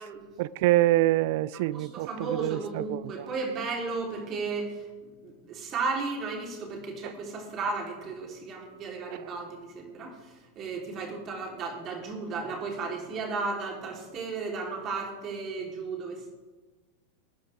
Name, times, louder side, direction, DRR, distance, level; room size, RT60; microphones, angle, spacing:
voice 1, 0.4-2.1 2.4-3.3, right 17 dB, 55° right, 0.3 m, -25 dB
voice 2, 1.5-4.9 5.2-16.3, right 4 dB, 35° right, 3.9 m, -34 dB
20.0 x 10.5 x 3.7 m
figure-of-eight pair, 90°, 0 cm